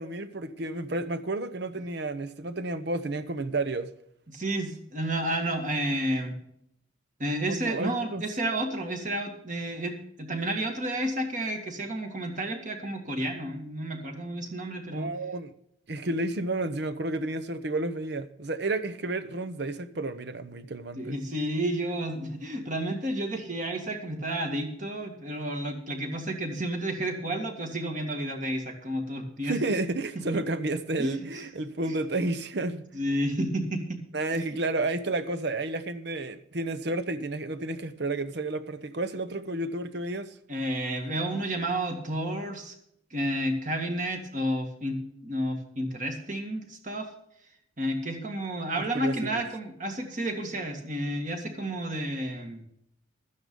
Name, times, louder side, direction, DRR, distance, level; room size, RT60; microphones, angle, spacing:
voice 1, 0.0-3.9 7.5-8.2 14.9-15.5 15.9-21.2 29.4-32.8 34.1-40.3 48.7-49.4, right 2 dB, 55° right, 0.8 m, -31 dB
voice 2, 4.3-6.3 7.2-15.1 21.0-29.6 31.0-31.4 31.9-32.0 32.9-34.0 40.5-42.8 43.1-47.1 47.8-52.6, right 1 dB, 40° right, 1.9 m, -31 dB
12.5 x 9.7 x 5.3 m
head